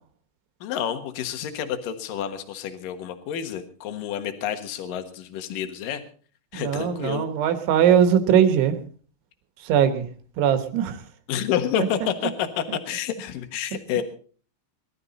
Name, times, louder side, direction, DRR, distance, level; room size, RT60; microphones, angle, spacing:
voice 1, 0.6-6.0 6.5-7.3 11.3-14.0, left 9 dB, 60° left, 8 dB, 2.4 m, -29 dB
voice 2, 6.5-8.7 9.6-10.1 10.4-11.0, right 9 dB, 75° right, 9 dB, 3.6 m, -20 dB
21.0 x 12.5 x 4.1 m, 0.42 s
omnidirectional pair, 5.5 m